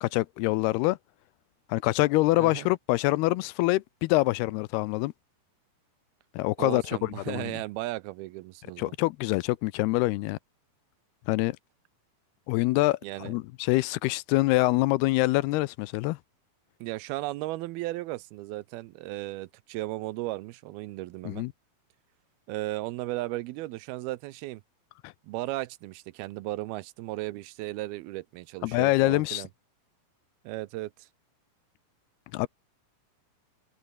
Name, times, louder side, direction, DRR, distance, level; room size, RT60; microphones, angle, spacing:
voice 1, 0.0-1.0 1.7-5.1 6.4-7.5 8.8-10.4 11.3-11.6 12.5-16.2 21.3-21.5 25.0-25.1 28.6-29.4 32.3-32.5, left 20 dB, 90° left, 2.6 m, -25 dB
voice 2, 6.6-8.9 13.0-13.3 16.8-21.5 22.5-24.6 25.2-29.5 30.4-31.1, right 18 dB, 80° right, 2.5 m, -35 dB
omnidirectional pair, 4.6 m